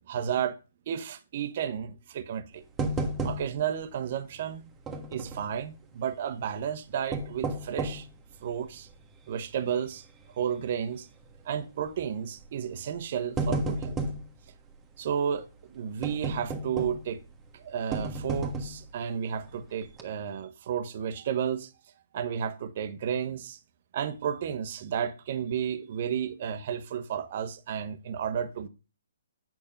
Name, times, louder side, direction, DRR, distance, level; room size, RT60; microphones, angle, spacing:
voice 1, 0.1-0.6 0.9-2.6 3.2-4.6 5.1-8.1 8.4-8.9 9.3-10.1 10.4-11.1 11.4-14.0 15.0-17.2 17.5-21.7 22.1-23.6 23.9-28.7, right 8 dB, 45° right, 0.9 m, -32 dB
sound 1, 2.8-3.8 4.0-4.1 4.9-5.5 6.9-8.1 8.7-8.8 9.4-9.7 10.0-10.1 11.2-11.5 12.4-12.6 13.0-14.3 16.0-17.2 17.9-18.9 19.4-19.6 19.9-20.0, right 2 dB, 15° right, 1.4 m, -32 dB
8.8 x 6.0 x 5.2 m
figure-of-eight pair, 130°, 0 cm